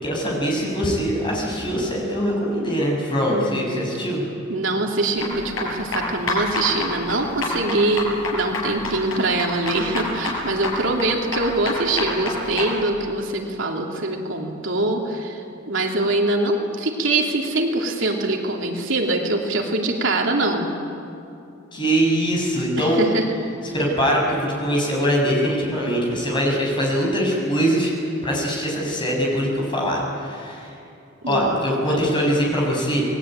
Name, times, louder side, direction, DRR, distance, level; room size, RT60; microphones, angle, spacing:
voice 1, 0.0-4.2 21.7-23.0 23.7-27.9 28.2-30.7 31.2-33.1, equal, 25° left, -2 dB, 7.1 m, -22 dB
voice 2, 3.3-3.9 4.5-20.7 22.8-23.3 31.2-32.0, right 2 dB, 75° right, 1 dB, 3.1 m, -23 dB
sound 1, 5.2-12.7, left 2 dB, 85° left, 6.6 m, -28 dB
28.5 x 20.5 x 9.1 m, 2.6 s
head